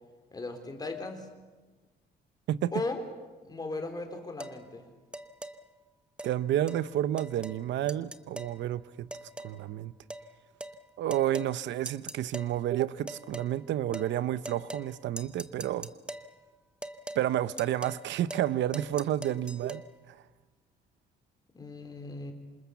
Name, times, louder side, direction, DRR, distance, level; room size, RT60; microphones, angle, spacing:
voice 1, 0.3-1.2 2.7-3.0 3.4-4.8 21.5-22.3, left 3 dB, 20° left, 5 dB, 3.9 m, -37 dB
sound 1, 4.4-4.6 5.1-5.6 6.2-6.3 6.7-6.8 7.2-7.6 7.9-8.6 9.1-9.6 10.1-10.3 10.6-10.8 11.1-11.5 11.9-12.5 13.1-13.5 13.9-14.1 14.4-14.9 15.2-16.3 16.8-17.2 17.6-18.0 18.3-18.5 18.7-19.8, right 1 dB, 5° right, 1.0 m, -41 dB
voice 2, 6.2-9.1 9.4-9.9 11.0-15.9 17.2-19.8, right 12 dB, 80° right, 15 dB, 0.8 m, -30 dB
27.5 x 27.0 x 7.1 m, 1.3 s
cardioid pair, 140°, 18 cm